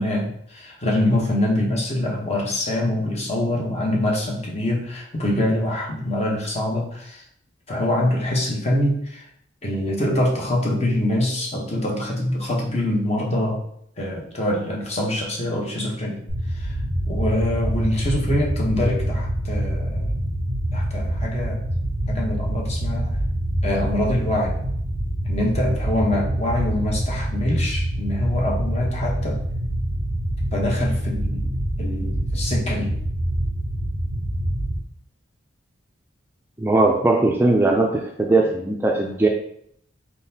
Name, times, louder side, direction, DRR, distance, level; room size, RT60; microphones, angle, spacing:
voice 1, 0.0-7.2 7.7-9.2 9.6-13.6 14.0-16.2 16.5-16.8 17.1-20.2 20.7-21.6 22.1-23.2 23.6-24.6 25.2-29.4 30.5-31.5 31.8-32.9, left 1 dB, 35° left, -1 dB, 0.9 m, -24 dB
sound 1, 16.3-34.8, right 1 dB, 80° left, 1.3 m, -25 dB
voice 2, 36.6-39.3, right 2 dB, 10° right, 1 dB, 0.3 m, -19 dB
4.3 x 3.9 x 2.7 m, 0.69 s
head